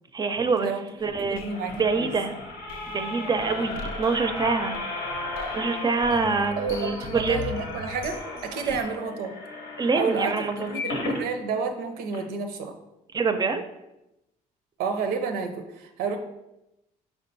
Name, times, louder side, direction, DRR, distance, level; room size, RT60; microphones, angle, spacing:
voice 1, 0.1-0.7 1.0-2.3 2.9-4.8 5.5-7.4 8.6-8.8 9.8-10.7 13.1-13.6, right 4 dB, 25° right, 8 dB, 0.4 m, -26 dB
sound 1, 1.0-8.8, left 4 dB, 70° left, 0.5 m, -40 dB
sound 2, 1.1-11.2 11.7-11.8 12.1-12.2, left 2 dB, 85° left, 0.9 m, -35 dB
voice 2, 1.3-2.1 6.1-6.2 6.6-9.3 9.9-12.7 14.8-16.2, right 5 dB, 90° right, 6 dB, 0.5 m, -30 dB
4.4 x 3.6 x 2.6 m, 0.90 s
supercardioid pair, 80°, 15 cm